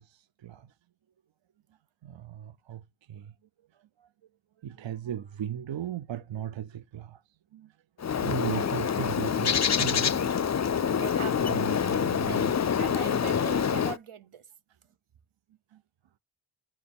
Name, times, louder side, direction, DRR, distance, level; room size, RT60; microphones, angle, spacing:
voice 1, 2.0-2.8 3.1-3.2 4.6-7.2 7.5-7.6 8.2-10.2 11.5-11.6 12.0-12.3, right 10 dB, 65° right, 0.5 m, -36 dB
Bird, 8.0-14.0, left 7 dB, 35° left, 0.4 m, -26 dB
voice 2, 11.0-11.7 12.3-12.5 12.8-14.4, right 7 dB, 85° right, 1.0 m, -40 dB
8.5 x 4.5 x 3.4 m
wide cardioid pair, 85°, 49 cm